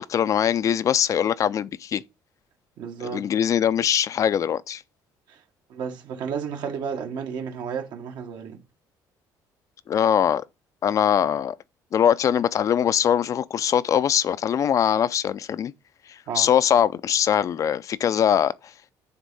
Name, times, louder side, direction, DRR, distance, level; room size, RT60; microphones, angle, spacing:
voice 1, 0.0-2.0 3.0-4.8 9.9-10.4 10.8-11.6 11.9-15.7 16.3-18.5, left 9 dB, 45° left, 0.5 m, -22 dB
voice 2, 2.8-3.3 5.3-5.4 5.7-8.6 16.3-16.5, right 7 dB, 70° right, 1.6 m, -32 dB
9.4 x 3.6 x 5.5 m
cardioid pair, 115°, 8 cm